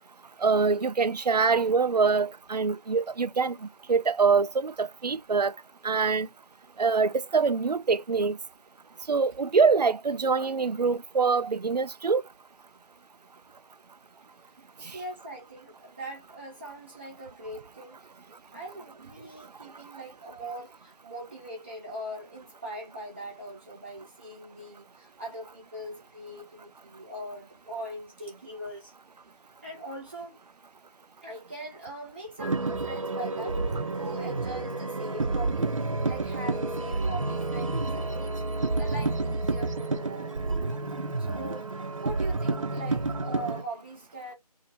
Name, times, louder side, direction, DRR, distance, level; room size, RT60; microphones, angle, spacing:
voice 1, 0.4-3.6 3.9-5.5 5.8-6.3 6.8-8.4 9.1-12.2, right 5 dB, 90° right, 0.5 m, -24 dB
voice 2, 14.9-18.0 18.5-28.9 29.6-30.4 31.2-33.6 34.0-35.7 36.1-38.3 38.8-40.4 41.2-41.7 42.0-44.3, right 1 dB, 20° right, 0.8 m, -41 dB
sound 1, 32.4-43.6, right 3 dB, 55° right, 0.7 m, -30 dB
2.8 x 2.7 x 4.1 m
figure-of-eight pair, 165°, 20 cm